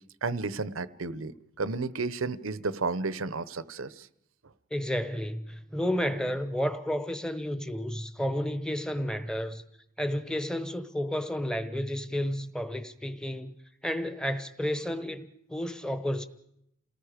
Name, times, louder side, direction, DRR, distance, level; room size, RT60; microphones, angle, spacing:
voice 1, 0.2-4.1, right 3 dB, 90° right, 0.9 m, -32 dB
voice 2, 4.7-9.6 10.0-13.5 13.8-16.3, equal, 5° left, 1.0 m, -31 dB
28.5 x 18.5 x 5.1 m
head